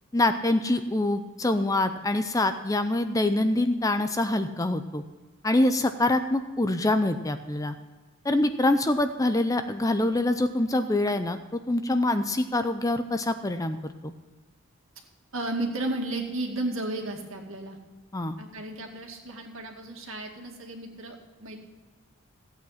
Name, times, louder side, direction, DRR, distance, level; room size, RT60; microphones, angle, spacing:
voice 1, 0.1-5.0 5.4-7.7 8.2-14.1 18.1-18.4, left 2 dB, 15° left, 9 dB, 0.5 m, -25 dB
voice 2, 15.3-17.8 18.4-21.6, right 2 dB, 60° right, 2 dB, 2.2 m, -33 dB
15.5 x 8.6 x 5.7 m, 1.3 s
head